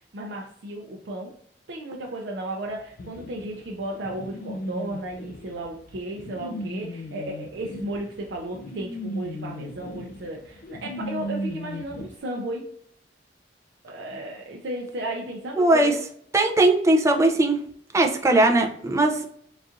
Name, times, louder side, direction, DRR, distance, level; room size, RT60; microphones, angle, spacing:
voice 1, 0.1-1.4 1.7-12.6 13.8-16.0, right 1 dB, 70° right, -1 dB, 0.5 m, -34 dB
sound 1, 3.0-12.1, equal, 55° left, 0.5 m, -36 dB
voice 2, 15.6-15.9 16.3-17.6 17.9-19.3, right 2 dB, 15° right, 3 dB, 0.4 m, -19 dB
4.0 x 2.4 x 2.5 m, 0.65 s
head